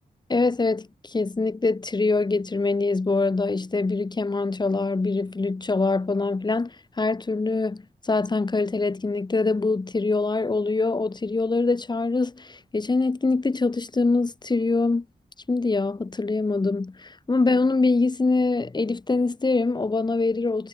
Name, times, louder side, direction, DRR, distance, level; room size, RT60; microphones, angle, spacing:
voice 1, 0.3-15.1 15.5-20.7, left 3 dB, 30° left, 7.0 m, -24 dB
wide cardioid pair, 170°, 15 cm